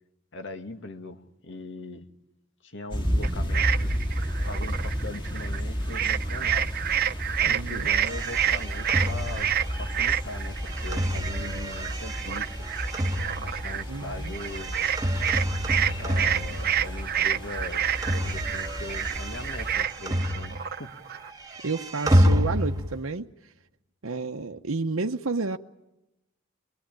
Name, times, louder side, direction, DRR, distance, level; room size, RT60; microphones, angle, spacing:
voice 1, 0.3-2.1 2.6-3.9 4.4-6.7 7.4-12.7 13.4-14.8 16.0-21.0, left 2 dB, 60° left, 7 dB, 2.2 m, -40 dB
sound 1, 2.9-19.9, equal, 25° left, 4.7 m, -32 dB
sound 2, 3.2-5.6 5.9-21.3, right 10 dB, 50° right, 0.9 m, -29 dB
voice 2, 7.5-7.9 13.9-14.3 21.6-23.3 24.0-25.6, right 3 dB, 80° right, 4 dB, 0.9 m, -30 dB
sound 3, 7.9-17.2 17.4-20.9 21.1-23.0, equal, 20° right, 1.8 m, -29 dB
23.5 x 23.0 x 9.0 m, 0.91 s
head